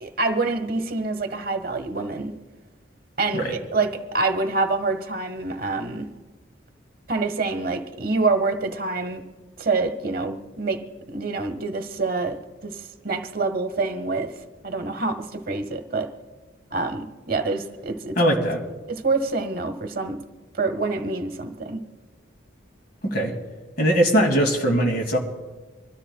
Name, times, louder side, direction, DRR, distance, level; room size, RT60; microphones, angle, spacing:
voice 1, 0.0-2.3 3.2-6.1 7.1-9.2 9.6-10.8 11.1-12.4 12.6-14.3 14.6-16.1 16.7-18.2 18.9-20.2 20.5-21.8, right 3 dB, 50° right, 9 dB, 0.9 m, -26 dB
voice 2, 18.2-18.6 23.0-23.3 23.8-25.2, equal, 50° left, 2 dB, 2.3 m, -20 dB
25.5 x 13.0 x 2.2 m, 1.3 s
head